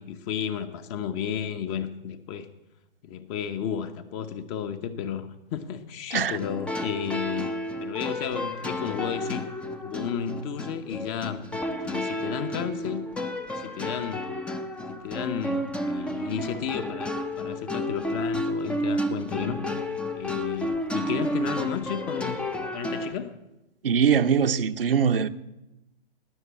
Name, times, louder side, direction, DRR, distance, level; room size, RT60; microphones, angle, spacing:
voice 1, 0.0-2.5 3.0-7.5 7.8-9.5 9.8-11.4 11.8-13.0 13.5-14.3 14.9-19.6 20.2-22.5 22.7-23.3, left 8 dB, 30° left, 1.0 m, -33 dB
sound 1, 6.3-23.1, left 1 dB, 5° left, 0.6 m, -31 dB
voice 2, 23.8-25.3, right 7 dB, 70° right, 0.9 m, -22 dB
19.0 x 6.8 x 8.4 m
figure-of-eight pair, 125°, 30 cm